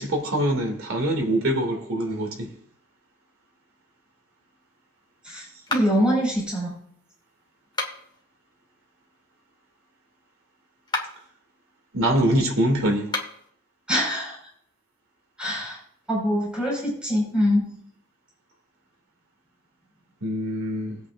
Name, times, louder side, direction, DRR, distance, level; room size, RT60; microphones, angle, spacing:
voice 1, 0.0-2.5 11.9-13.1 20.2-21.0, right 1 dB, 80° right, 2.5 m, -24 dB
voice 2, 5.2-6.7 13.9-14.4 15.4-15.8 16.1-17.8, equal, 5° right, 5.0 m, -24 dB
sound 1, 5.7-6.2 7.6-8.2 10.8-11.3 13.0-13.5, left 2 dB, 20° left, 1.6 m, -31 dB
19.5 x 8.3 x 2.5 m
head